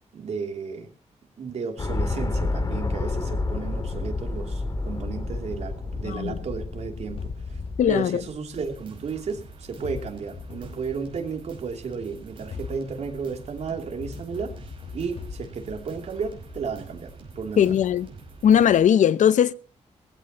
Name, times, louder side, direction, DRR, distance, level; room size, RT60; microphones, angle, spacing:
voice 1, 0.1-0.9 1.4-7.6 7.9-14.5 14.9-17.8, right 5 dB, 65° right, 2.8 m, -33 dB
sound 1, 1.8-8.0, left 3 dB, 30° left, 1.9 m, -30 dB
voice 2, 6.0-6.4 7.8-8.2 17.6-18.1 18.4-19.5, left 9 dB, 90° left, 0.7 m, -19 dB
sound 2, 7.2-9.3 9.8-11.6 12.3-17.4, left 6 dB, 50° left, 1.2 m, -42 dB
sound 3, 8.5-18.8, right 3 dB, 45° right, 5.3 m, -45 dB
21.0 x 15.5 x 2.9 m
wide cardioid pair, 165°, 12 cm